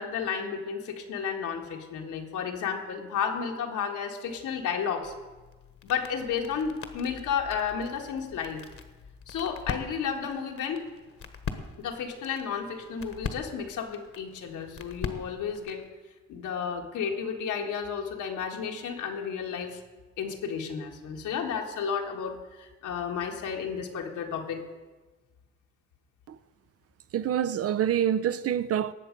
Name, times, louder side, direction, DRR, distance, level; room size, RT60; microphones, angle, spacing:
voice 1, 0.0-5.1 5.8-8.6 9.3-10.9 11.8-15.8 16.3-19.8 20.2-24.6, left 7 dB, 80° left, 1.8 m, -32 dB
sound 1, 5.0-15.9, left 5 dB, 50° left, 1.3 m, -42 dB
voice 2, 27.1-28.9, right 10 dB, 50° right, 0.6 m, -26 dB
18.5 x 7.3 x 5.3 m
cardioid pair, 90°, 30 cm